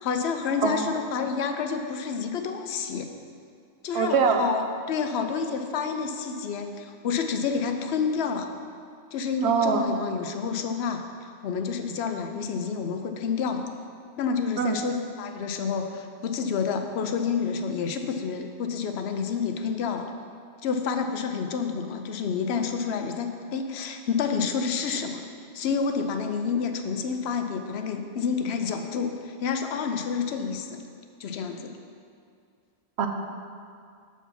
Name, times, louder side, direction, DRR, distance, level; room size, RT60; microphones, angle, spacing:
voice 1, 0.0-3.1 3.8-8.5 9.1-11.0 11.4-13.7 14.2-14.9 15.2-20.1 20.6-25.2 25.5-30.8 31.2-31.7, left 5 dB, 80° left, 6 dB, 0.9 m, -29 dB
voice 2, 3.9-4.4 9.4-9.8 14.6-14.8 21.7-21.8 33.0-33.1, right 6 dB, 85° right, 4 dB, 0.9 m, -23 dB
6.8 x 4.6 x 5.7 m, 2.3 s
omnidirectional pair, 1.1 m